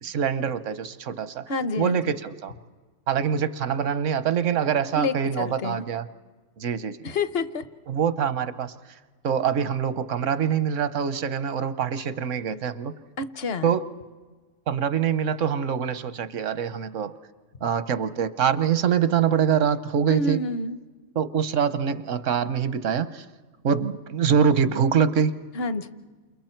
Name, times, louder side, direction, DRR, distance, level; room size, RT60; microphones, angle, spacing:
voice 1, 0.0-1.5 1.8-2.5 3.1-6.1 6.6-7.0 7.9-8.7 9.2-12.9 13.6-13.8 14.7-17.2 17.6-20.4 21.2-23.2 23.6-25.3, right 7 dB, 80° right, 13 dB, 1.2 m, -24 dB
voice 2, 1.5-2.1 4.9-5.8 7.0-7.7 13.2-13.7 20.1-20.8 25.5-25.9, left 3 dB, 55° left, 13 dB, 1.1 m, -28 dB
29.5 x 28.5 x 4.5 m, 1.4 s
omnidirectional pair, 1.3 m